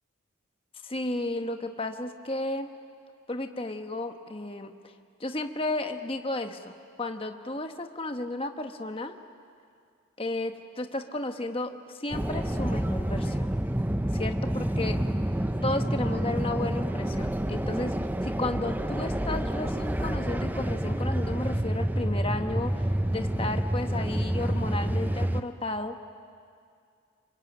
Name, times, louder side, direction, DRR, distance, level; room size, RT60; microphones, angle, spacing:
voice 1, 0.8-2.7 3.3-4.7 5.2-6.7 7.0-9.2 10.2-13.5 14.1-15.0 15.6-17.9 18.2-25.9, left 2 dB, 25° left, 6 dB, 1.2 m, -33 dB
sound 1, 12.1-25.4, right 1 dB, 10° right, 0.6 m, -28 dB
27.0 x 24.0 x 8.9 m, 2.3 s
head